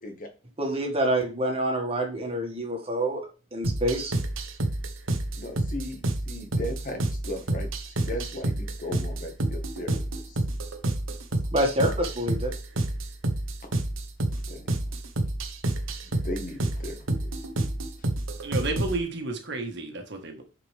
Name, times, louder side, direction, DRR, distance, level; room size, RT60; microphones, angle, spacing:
voice 1, 0.6-3.2 3.5-4.2 11.5-12.5, right 1 dB, 30° right, 1 dB, 2.0 m, -27 dB
sound 1, 3.6-19.0, right 1 dB, 75° right, 1.0 m, -29 dB
voice 2, 5.3-10.4 14.5-14.8 16.2-17.4 18.0-18.1, left 1 dB, 40° left, 5 dB, 1.6 m, -37 dB
voice 3, 18.4-20.4, right 2 dB, 60° right, 4 dB, 1.6 m, -31 dB
9.6 x 5.1 x 3.5 m, 0.34 s
head